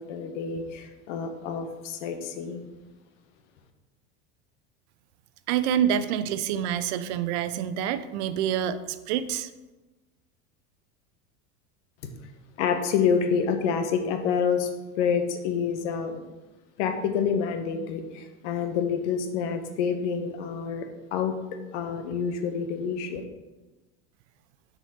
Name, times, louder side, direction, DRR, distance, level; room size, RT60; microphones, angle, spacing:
voice 1, 0.0-2.6 12.6-14.7 15.0-16.2 16.8-21.4 21.7-23.2, left 6 dB, 75° left, 6 dB, 0.9 m, -27 dB
voice 2, 5.5-9.5, right 9 dB, 70° right, 13 dB, 0.5 m, -27 dB
5.9 x 4.0 x 4.2 m, 1.1 s
supercardioid pair, 120°, 36 cm